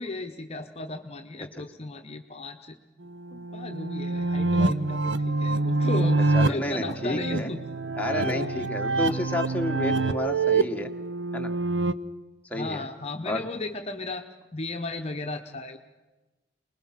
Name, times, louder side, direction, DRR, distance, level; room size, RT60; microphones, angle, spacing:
voice 1, 0.0-2.8 3.3-7.6 8.3-8.5 9.0-9.2 12.5-15.8, left 2 dB, 35° left, 5 dB, 0.9 m, -35 dB
sound 1, 3.1-11.9, right 3 dB, 80° right, 0.8 m, -26 dB
voice 2, 6.3-7.5 8.0-10.9 11.3-11.5 12.5-12.9 13.2-13.4, left 1 dB, 10° left, 2 dB, 1.4 m, -30 dB
26.0 x 20.5 x 5.8 m, 1.2 s
head